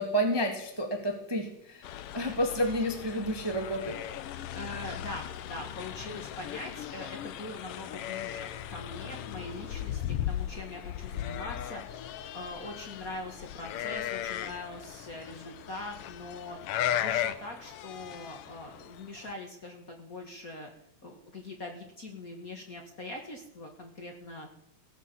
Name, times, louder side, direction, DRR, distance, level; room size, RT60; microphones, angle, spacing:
voice 1, 0.0-1.8 2.1-4.0, equal, 10° right, 4 dB, 1.2 m, -30 dB
sound 1, 1.8-19.3, left 11 dB, 75° left, 1.4 m, -37 dB
voice 2, 4.5-11.8 12.3-16.6 16.9-20.7 21.0-24.5, left 2 dB, 35° left, 2 dB, 1.9 m, -42 dB
16.5 x 9.1 x 7.0 m, 0.74 s
omnidirectional pair, 3.3 m